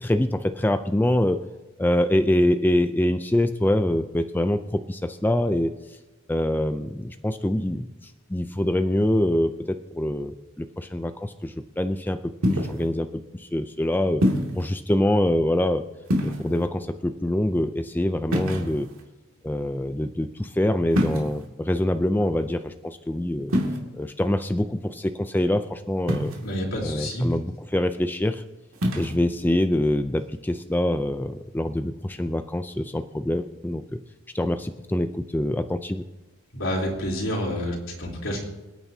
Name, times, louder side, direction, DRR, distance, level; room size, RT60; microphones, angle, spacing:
voice 1, 0.0-1.5 1.8-6.0 6.3-12.2 12.5-14.2 14.5-15.9 16.4-18.9 19.4-23.5 23.9-26.3 26.8-28.4 28.9-34.0 34.3-36.0, left 1 dB, 10° left, 8 dB, 0.4 m, -25 dB
sound 1, 12.4-12.9 14.2-14.6 16.0-16.7 18.3-19.0 20.9-21.5 23.5-23.8 26.1-26.6 28.7-29.1, equal, 75° right, 2.4 m, -25 dB
voice 2, 26.4-27.3 36.5-38.4, equal, 70° left, -2 dB, 3.6 m, -28 dB
27.0 x 9.2 x 2.8 m, 1.1 s
head